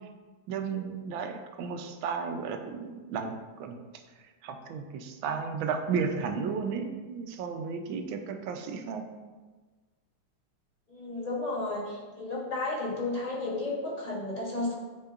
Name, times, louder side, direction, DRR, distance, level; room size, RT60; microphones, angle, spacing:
voice 1, 0.5-3.8 4.4-9.0, right 5 dB, 75° right, 5 dB, 1.3 m, -33 dB
voice 2, 10.9-14.7, left 2 dB, 25° left, -5 dB, 0.9 m, -33 dB
9.4 x 4.6 x 2.4 m, 1.3 s
omnidirectional pair, 2.4 m